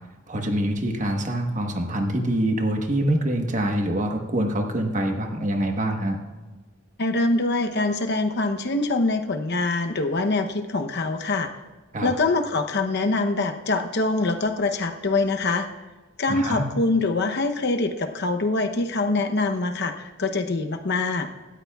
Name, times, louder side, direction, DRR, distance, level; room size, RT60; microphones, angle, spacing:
voice 1, 0.3-6.2 11.9-12.1 16.3-16.6, right 1 dB, 40° right, 3 dB, 1.2 m, -25 dB
voice 2, 7.0-11.5 12.0-15.7 16.2-21.3, left 3 dB, 55° left, 6 dB, 0.8 m, -24 dB
17.5 x 13.0 x 2.4 m, 1.2 s
head